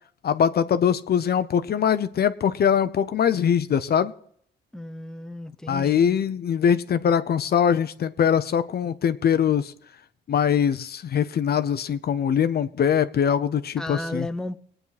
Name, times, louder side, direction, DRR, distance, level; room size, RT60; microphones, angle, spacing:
voice 1, 0.2-4.1 5.7-9.7 10.3-14.3, left 8 dB, 50° left, 0.8 m, -22 dB
voice 2, 4.7-6.2 13.8-14.6, left 1 dB, 5° left, 0.7 m, -34 dB
20.0 x 9.1 x 4.1 m
cardioid pair, 90°, 20 cm